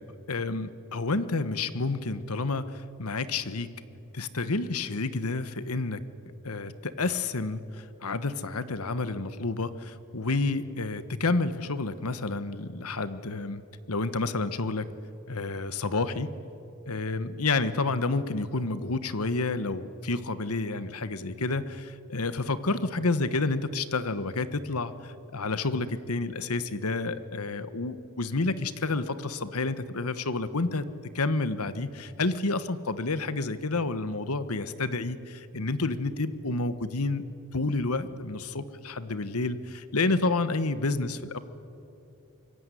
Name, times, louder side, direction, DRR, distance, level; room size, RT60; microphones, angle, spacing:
voice 1, 0.3-3.7 4.1-6.0 6.4-13.6 13.9-14.9 15.3-16.3 16.9-30.8 31.1-37.2 37.5-41.4, left 3 dB, 90° left, 13 dB, 1.3 m, -29 dB
25.5 x 22.5 x 9.9 m, 2.8 s
head